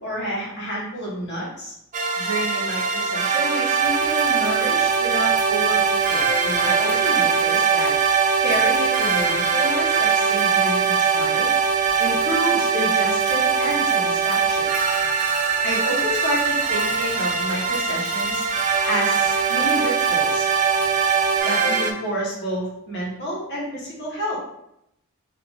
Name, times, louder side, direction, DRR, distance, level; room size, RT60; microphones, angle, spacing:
voice 1, 0.0-1.7 2.2-7.9 8.4-11.5 12.0-14.7 15.6-18.4 18.8-20.5 21.4-24.4, equal, 50° left, -6 dB, 1.3 m, -29 dB
sound 1, 1.9-21.9, right 6 dB, 35° right, 0.3 m, -21 dB
Bicycle / Mechanisms, 3.7-21.4, equal, 20° left, 1.4 m, -42 dB
3.9 x 2.9 x 3.6 m, 0.80 s
head